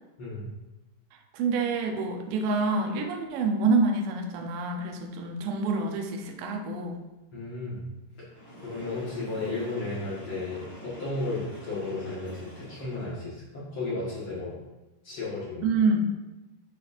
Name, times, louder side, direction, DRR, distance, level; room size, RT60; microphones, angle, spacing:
voice 1, 1.3-7.0 15.6-16.0, right 3 dB, 80° right, 3 dB, 2.1 m, -27 dB
voice 2, 7.3-7.8 8.2-8.3 8.6-14.5 15.0-15.7, left 2 dB, 60° left, -8 dB, 1.3 m, -34 dB
Train, 8.3-13.3, left 1 dB, 35° right, 1.9 m, -45 dB
10.0 x 4.2 x 2.6 m, 1.1 s
omnidirectional pair, 4.8 m